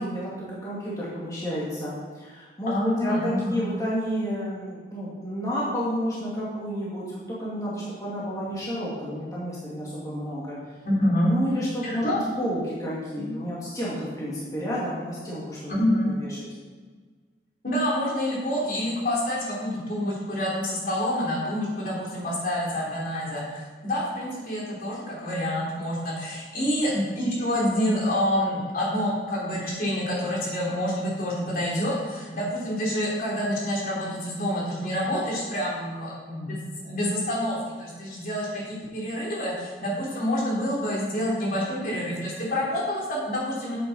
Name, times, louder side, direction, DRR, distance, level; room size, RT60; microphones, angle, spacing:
voice 1, 0.0-10.6 11.3-12.0 12.4-15.7 16.1-16.4, equal, 20° left, -8 dB, 2.2 m, -31 dB
voice 2, 2.7-3.6 10.8-11.3 11.8-12.2 13.1-13.3 15.8-16.1 17.6-43.8, left 1 dB, 55° left, -5 dB, 3.1 m, -27 dB
9.5 x 8.2 x 4.1 m, 1.4 s
head